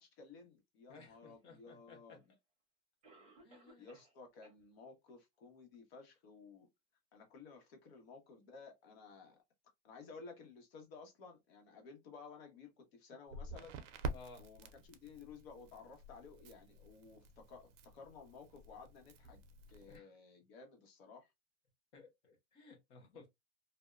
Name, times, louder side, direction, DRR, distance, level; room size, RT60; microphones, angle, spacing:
voice 1, 0.0-2.3 3.8-6.7 7.1-9.4 9.8-13.8 14.4-19.4 19.7-21.3, left 4 dB, 50° left, 1.1 m, -55 dB
voice 2, 0.9-2.2 3.4-3.9 14.1-14.4 19.9-20.1 21.9-23.3, left 4 dB, 15° left, 0.4 m, -57 dB
Cough, 1.9-2.0 3.0-4.2 4.4-4.5 5.1-5.2 5.7-5.8, right 2 dB, 20° right, 0.8 m, -61 dB
Crackle, 13.3-20.0, right 2 dB, 70° right, 0.6 m, -48 dB
2.6 x 2.1 x 2.3 m
supercardioid pair, 165°, 37 cm